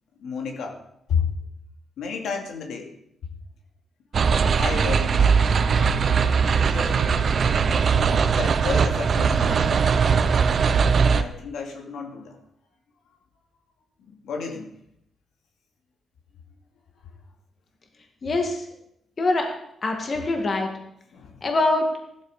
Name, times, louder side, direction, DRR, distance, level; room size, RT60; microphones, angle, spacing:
voice 1, 0.2-0.8 1.1-1.3 2.0-2.9 4.2-5.4 6.5-7.2 8.3-9.8 11.1-12.4 14.1-14.7 21.1-21.4, left 6 dB, 80° left, 2 dB, 2.5 m, -31 dB
sound 1, 4.1-11.2, right 6 dB, 40° right, 0.7 m, -20 dB
voice 2, 18.2-18.6 19.2-19.5 19.8-20.7 21.4-21.9, left 2 dB, 30° left, 3 dB, 2.0 m, -23 dB
15.5 x 12.5 x 5.0 m, 0.75 s
wide cardioid pair, 175°, 0 cm